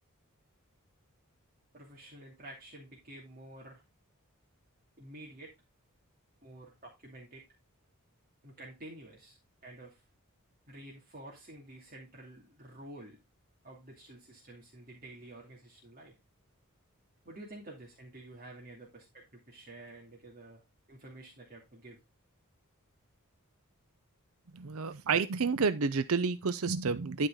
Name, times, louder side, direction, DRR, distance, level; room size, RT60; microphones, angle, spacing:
voice 1, 1.7-3.8 5.0-5.5 6.4-7.4 8.4-9.4 9.6-10.0 10.7-13.2 13.6-16.1 17.2-20.6 20.9-22.0, right 1 dB, 40° right, 2.4 m, -50 dB
voice 2, 24.5-27.3, right 4 dB, 70° right, 0.6 m, -30 dB
12.0 x 4.8 x 3.7 m
head